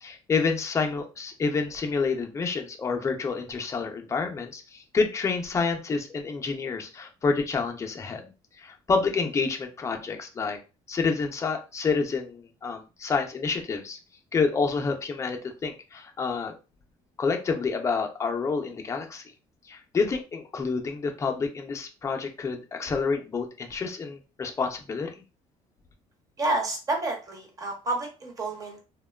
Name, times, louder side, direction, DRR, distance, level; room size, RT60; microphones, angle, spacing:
voice 1, 0.0-8.3 8.6-10.6 10.9-14.0 14.3-16.5 17.2-19.2 19.7-25.1, left 4 dB, 20° left, 3 dB, 0.4 m, -28 dB
voice 2, 26.4-28.8, right 2 dB, 25° right, 1 dB, 0.8 m, -29 dB
2.9 x 2.1 x 2.2 m, 0.31 s
cardioid pair, 140°, 13 cm